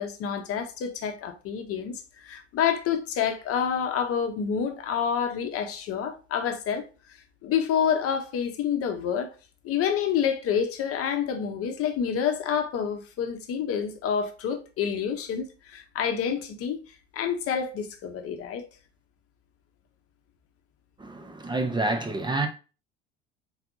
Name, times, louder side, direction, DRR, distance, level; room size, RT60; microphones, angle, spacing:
voice 1, 0.0-1.9 2.2-6.8 7.4-9.3 9.6-16.8 17.1-18.7, left 8 dB, 45° left, 0.9 m, -28 dB
voice 2, 21.0-22.5, right 2 dB, 15° right, 0.8 m, -28 dB
4.3 x 4.0 x 2.6 m
hypercardioid pair, 70°, 32 cm